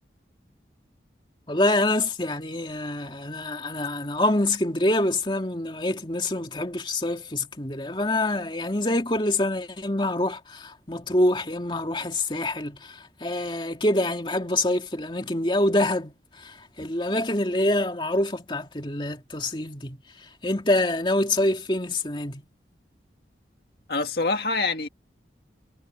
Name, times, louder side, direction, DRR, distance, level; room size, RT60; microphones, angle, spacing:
voice 1, 1.5-20.0 20.4-22.4, left 1 dB, 25° left, 2.6 m, -26 dB
voice 2, 23.9-24.9, left 3 dB, 60° left, 2.0 m, -25 dB
head